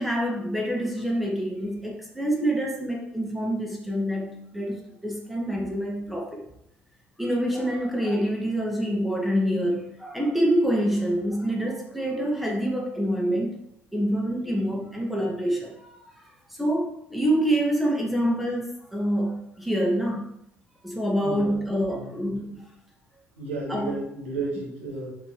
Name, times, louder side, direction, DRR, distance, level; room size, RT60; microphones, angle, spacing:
voice 1, 0.0-6.4 7.2-13.6 13.9-15.9 16.5-20.3 20.8-22.6 23.7-23.9, equal, ahead, -1 dB, 2.2 m, -26 dB
voice 2, 21.2-21.6 21.9-22.5 23.4-25.2, right 2 dB, 80° right, -6 dB, 2.8 m, -33 dB
6.7 x 5.5 x 5.0 m, 0.77 s
figure-of-eight pair, 50°, 7 cm